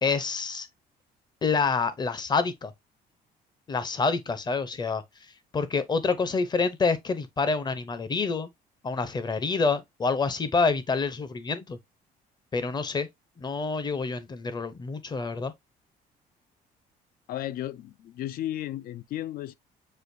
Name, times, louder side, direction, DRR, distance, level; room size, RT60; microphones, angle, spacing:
voice 1, 0.0-0.7 1.4-2.7 3.7-5.0 5.5-8.5 8.8-11.8 12.5-13.1 13.4-15.5, left 4 dB, 25° left, 0.7 m, -27 dB
voice 2, 17.3-19.5, left 13 dB, 60° left, 0.4 m, -34 dB
6.3 x 2.5 x 2.6 m
cardioid pair, 110°, 17 cm